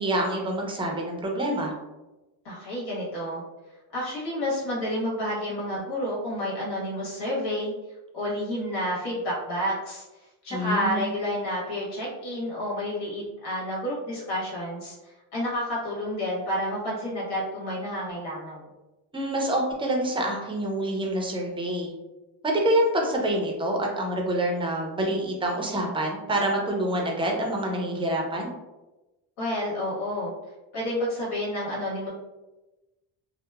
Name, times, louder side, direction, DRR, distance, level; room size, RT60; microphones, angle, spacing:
voice 1, 0.0-1.7 10.5-11.2 19.1-21.9 22.4-28.5, right 1 dB, 15° right, 0 dB, 0.5 m, -26 dB
voice 2, 2.4-3.4 3.9-7.7 8.1-10.0 10.4-18.7 29.4-30.3 30.7-32.1, equal, 75° left, -5 dB, 1.4 m, -30 dB
2.8 x 2.0 x 2.3 m, 1.1 s
cardioid pair, 115°, 40 cm